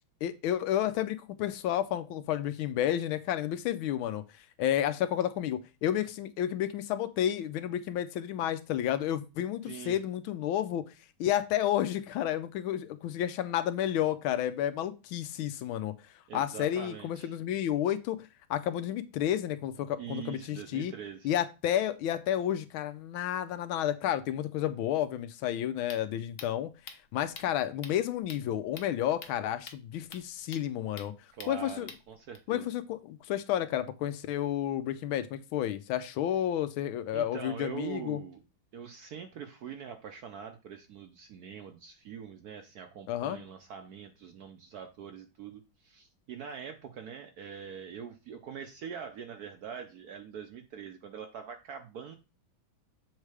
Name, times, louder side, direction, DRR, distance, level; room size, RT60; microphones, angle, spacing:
voice 1, 0.2-4.2 4.6-10.8 11.2-15.9 16.3-20.9 21.2-26.7 27.1-31.1 31.5-31.9 32.5-38.2 43.1-43.4, left 11 dB, 85° left, 1.5 m, -31 dB
voice 2, 9.7-10.0 16.3-17.3 20.0-21.3 31.3-32.7 37.1-38.4 38.7-52.2, right 8 dB, 70° right, 0.9 m, -43 dB
sound 1, 25.5-32.4, left 5 dB, 55° left, 0.6 m, -50 dB
7.3 x 3.3 x 4.8 m
omnidirectional pair, 2.2 m